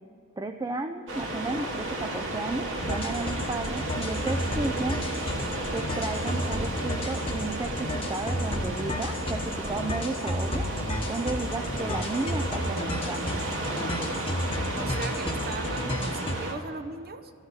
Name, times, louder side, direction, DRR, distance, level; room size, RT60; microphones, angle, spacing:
voice 1, 0.4-5.0 5.7-10.7 11.1-13.3, right 3 dB, 15° right, 6 dB, 0.4 m, -33 dB
sound 1, 1.1-16.5, right 1 dB, 60° right, 2.2 m, -33 dB
sound 2, 2.8-16.3, left 1 dB, 25° left, 1.0 m, -32 dB
voice 2, 14.8-17.3, right 3 dB, 45° right, 9 dB, 0.8 m, -38 dB
14.0 x 6.4 x 9.6 m, 2.5 s
head